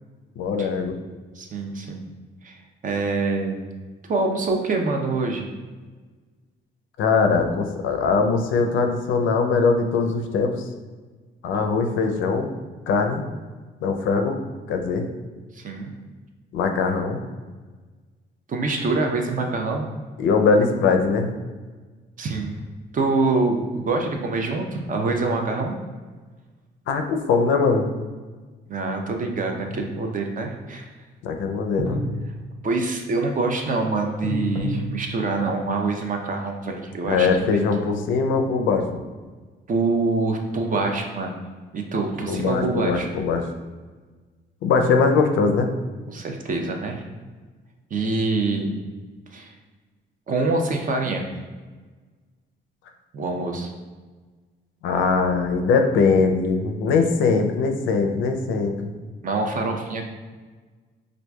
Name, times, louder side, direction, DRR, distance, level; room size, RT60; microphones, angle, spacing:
voice 1, 0.4-1.0 7.0-10.7 11.4-12.5 12.9-13.2 13.8-14.4 14.7-15.0 16.5-17.2 20.2-21.3 26.9-27.9 31.2-32.0 37.0-38.8 42.3-43.4 44.6-45.7 54.8-58.9, left 4 dB, 80° left, 5 dB, 0.4 m, -21 dB
voice 2, 1.4-2.1 2.4-3.6 4.1-5.5 15.5-15.9 18.5-19.9 22.2-22.6 22.9-25.8 28.7-30.9 32.6-37.6 39.7-41.4 41.7-43.1 46.1-47.0 47.9-48.7 49.3-49.5 50.3-51.2 53.1-53.7 59.2-60.0, right 3 dB, 40° right, 3 dB, 0.5 m, -25 dB
sound 1, 29.6-30.2 31.9-32.9 34.2-35.5, left 1 dB, 15° left, 0.6 m, -30 dB
4.5 x 2.5 x 2.2 m, 1.4 s
cardioid pair, 90°, 20 cm